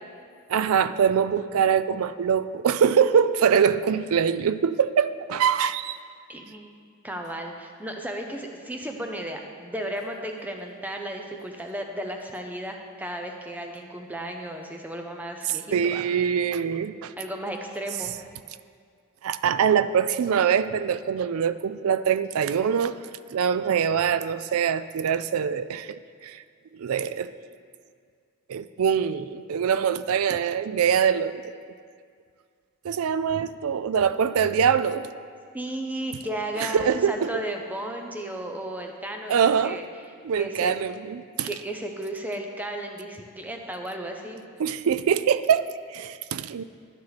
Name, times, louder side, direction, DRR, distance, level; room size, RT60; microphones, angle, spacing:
voice 1, 0.5-6.0 15.7-17.1 19.2-23.0 23.3-26.4 26.7-27.3 28.5-31.5 32.8-35.1 36.6-37.3 39.3-39.8 40.2-41.5 44.6-46.6, right 7 dB, 70° right, 14 dB, 0.4 m, -23 dB
voice 2, 6.3-6.7 7.0-16.0 17.2-18.2 35.5-39.3 39.6-39.8 40.4-40.7 41.4-44.4, right 1 dB, 5° right, 3 dB, 0.7 m, -34 dB
11.0 x 9.5 x 4.1 m, 2.1 s
head